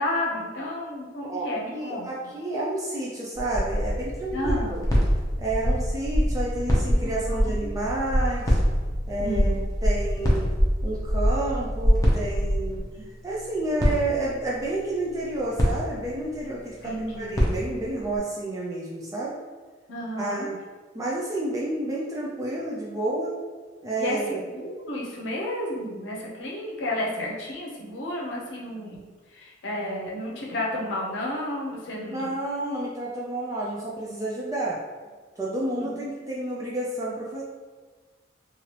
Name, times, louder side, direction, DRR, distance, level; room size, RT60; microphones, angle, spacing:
voice 1, 0.0-2.1 4.3-4.8 7.0-7.7 9.2-9.6 12.9-13.1 16.8-17.4 19.9-20.5 23.9-24.2 24.5-32.3 35.8-36.0, left 1 dB, 70° left, -3 dB, 0.7 m, -32 dB
voice 2, 1.3-4.8 5.4-8.6 9.1-9.5 9.8-10.5 10.8-12.8 13.2-19.4 20.2-20.6 20.9-23.4 23.8-24.4 32.0-34.8 35.4-37.4, right 2 dB, 20° right, -5 dB, 0.4 m, -30 dB
Irregular Heart Beat, 3.4-12.8, equal, 50° right, 1.2 m, -25 dB
sound 1, 3.7-18.2, equal, 20° left, 0.6 m, -30 dB
3.1 x 2.5 x 2.9 m, 1.4 s
head